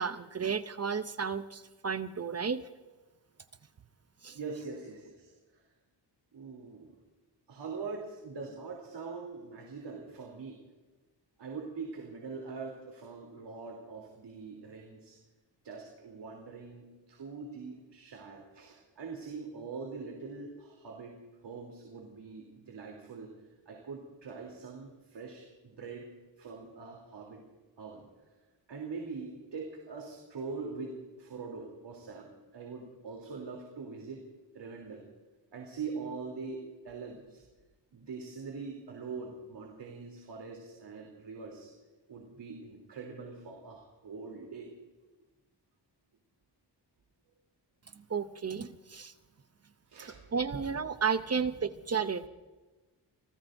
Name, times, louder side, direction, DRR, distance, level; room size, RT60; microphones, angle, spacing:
voice 1, 0.0-2.6 4.2-4.4 48.1-49.1 50.0-52.3, right 6 dB, 35° right, 11 dB, 0.7 m, -33 dB
voice 2, 4.3-5.6 6.3-6.9 7.5-10.6 11.4-15.2 15.6-21.2 21.4-23.3 23.6-26.1 26.4-27.4 27.8-28.0 28.7-34.2 34.5-35.0 35.5-37.4 37.9-41.7 42.1-44.7 49.9-50.2, right 4 dB, 70° right, 0 dB, 3.4 m, -43 dB
28.5 x 18.5 x 2.7 m, 1.2 s
wide cardioid pair, 115°, 43 cm